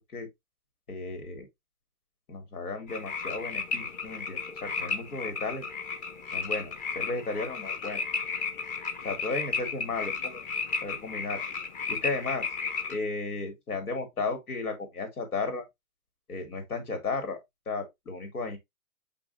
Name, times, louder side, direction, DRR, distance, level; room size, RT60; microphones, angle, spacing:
voice 1, 0.9-1.5 2.3-5.6 6.3-8.0 9.0-10.5 10.8-11.4 11.9-12.5 12.9-15.7 16.3-17.4 17.7-18.6, left 3 dB, 90° left, 3.6 m, -34 dB
sound 1, 2.9-13.0, left 4 dB, 20° left, 0.7 m, -34 dB
6.2 x 5.6 x 2.9 m
hypercardioid pair, 135°, 44 cm